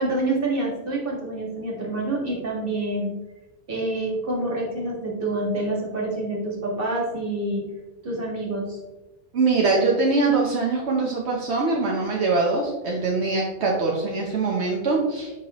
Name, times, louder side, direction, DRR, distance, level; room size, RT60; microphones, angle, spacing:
voice 1, 0.0-3.1 3.7-7.6 8.0-8.8, right 2 dB, 55° right, -2 dB, 2.0 m, -27 dB
voice 2, 9.3-15.3, right 3 dB, 80° right, -2 dB, 1.2 m, -23 dB
7.7 x 5.6 x 3.0 m, 1.1 s
omnidirectional pair, 1.1 m